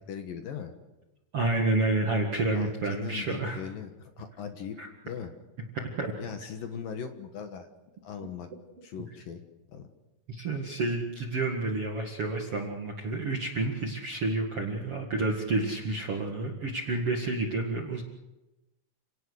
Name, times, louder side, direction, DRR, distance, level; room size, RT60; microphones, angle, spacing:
voice 1, 0.1-0.7 2.5-4.8 5.0-5.3 6.2-7.7 8.0-8.5 8.8-9.9, left 7 dB, 65° left, 6 dB, 2.4 m, -39 dB
voice 2, 1.3-3.6 4.8-4.9 6.0-6.1 10.3-18.0, right 2 dB, 65° right, 1 dB, 1.4 m, -29 dB
29.0 x 18.0 x 6.5 m, 0.99 s
omnidirectional pair, 5.9 m